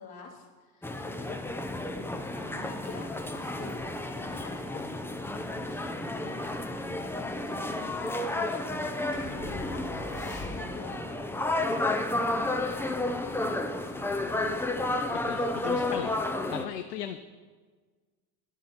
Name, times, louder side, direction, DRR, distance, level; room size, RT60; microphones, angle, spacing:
voice 1, 0.0-1.5 2.4-3.8 4.1-6.5 7.1-7.6 8.0-9.2 9.5-14.7, left 4 dB, 50° left, -1 dB, 2.6 m, -48 dB
sound 1, 0.8-16.7, left 2 dB, 5° left, 0.6 m, -32 dB
sound 2, 9.1-11.0, left 2 dB, 35° left, 2.7 m, -40 dB
voice 2, 15.3-16.2 16.5-17.2, left 11 dB, 90° left, 10 dB, 0.6 m, -36 dB
11.0 x 9.1 x 4.3 m, 1.4 s
hypercardioid pair, 75°, 46 cm